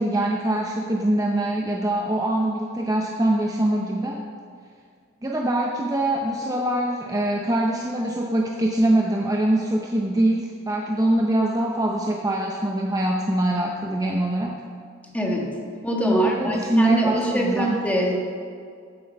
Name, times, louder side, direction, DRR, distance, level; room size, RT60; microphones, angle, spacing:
voice 1, 0.0-4.2 5.2-14.6 16.0-18.0, right 1 dB, 15° right, 0 dB, 0.7 m, -23 dB
voice 2, 15.1-15.6 15.8-18.2, equal, 5° left, -1 dB, 1.8 m, -23 dB
14.5 x 7.7 x 5.5 m, 2.2 s
head